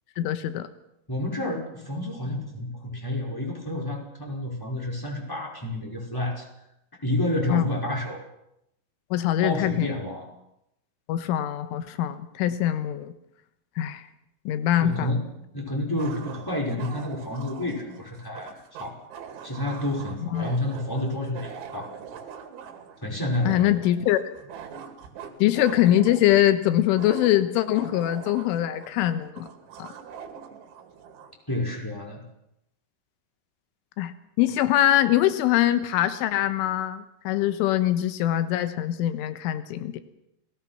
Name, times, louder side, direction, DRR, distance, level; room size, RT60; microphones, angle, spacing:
voice 1, 0.2-0.7 7.5-7.6 9.1-9.9 11.1-13.1 13.8-14.0 14.5-15.1 20.3-20.5 23.5-24.2 25.4-29.5 29.8-29.9 34.0-34.1 34.4-40.0, left 13 dB, 90° left, 11 dB, 3.7 m, -23 dB
voice 2, 1.1-6.4 7.0-8.2 9.4-10.3 14.8-15.2 15.5-19.0 19.4-21.9 23.0-23.8 31.5-32.2, left 1 dB, 5° left, 0 dB, 4.9 m, -29 dB
sound 1, 15.0-15.1 16.0-31.4, right 7 dB, 75° right, 4.5 m, -43 dB
29.0 x 20.0 x 5.9 m, 0.82 s
omnidirectional pair, 5.5 m